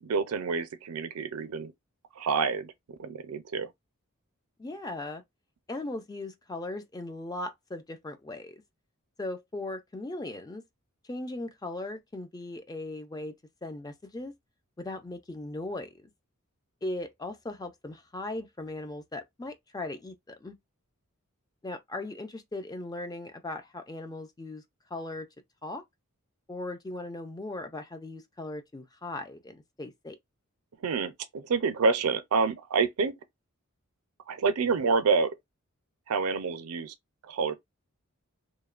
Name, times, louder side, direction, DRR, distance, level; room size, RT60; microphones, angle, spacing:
voice 1, 0.0-1.7 2.2-3.7 30.8-33.1 34.3-35.3 36.1-36.9 37.3-37.6, right 4 dB, 90° right, 0.5 m, -28 dB
voice 2, 4.6-5.2 5.7-8.6 9.2-10.6 11.1-13.3 13.6-14.3 14.8-16.1 16.8-20.6 21.6-24.6 24.9-25.3 25.6-25.8 26.5-30.2, left 2 dB, 15° left, 0.4 m, -38 dB
2.9 x 2.1 x 2.4 m
head